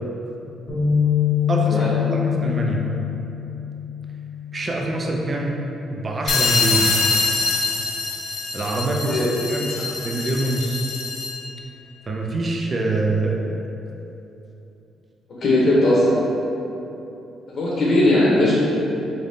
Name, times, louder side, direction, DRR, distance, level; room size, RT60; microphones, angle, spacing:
sound 1, 0.7-4.9 5.4-5.6 6.5-6.9, left 9 dB, 25° left, 1.0 m, -24 dB
voice 1, 1.5-2.9 4.5-5.5 5.9-6.9 8.5-10.8 12.1-13.5, right 2 dB, 35° right, 0 dB, 0.5 m, -25 dB
sound 2, 6.3-11.5, left 4 dB, 75° left, 0.4 m, -24 dB
voice 2, 15.4-16.1 17.5-18.5, left 1 dB, 50° left, -7 dB, 0.9 m, -18 dB
3.8 x 2.7 x 3.5 m, 3.0 s
cardioid pair, 90°, 0 cm